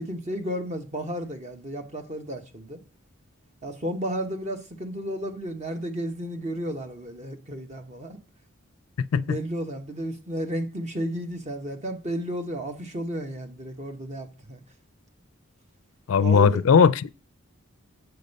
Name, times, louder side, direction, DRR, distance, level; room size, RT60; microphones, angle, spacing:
voice 1, 0.0-2.8 3.6-8.2 9.1-14.6 16.2-16.6, equal, 35° right, 1.1 m, -33 dB
voice 2, 16.1-17.1, left 6 dB, 75° left, 0.4 m, -18 dB
8.0 x 5.2 x 5.3 m
head